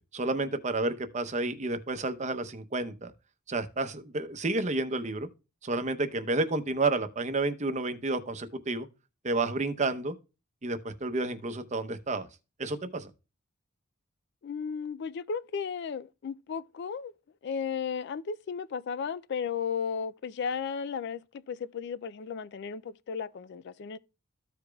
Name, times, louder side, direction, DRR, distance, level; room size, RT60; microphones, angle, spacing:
voice 1, 0.1-3.1 3.5-5.3 5.6-8.9 9.2-10.1 10.6-12.3 12.6-13.1, right 2 dB, 35° right, 0.7 m, -30 dB
voice 2, 14.4-17.1 17.4-21.2 21.5-24.0, left 6 dB, 55° left, 0.3 m, -34 dB
14.5 x 4.9 x 2.3 m
head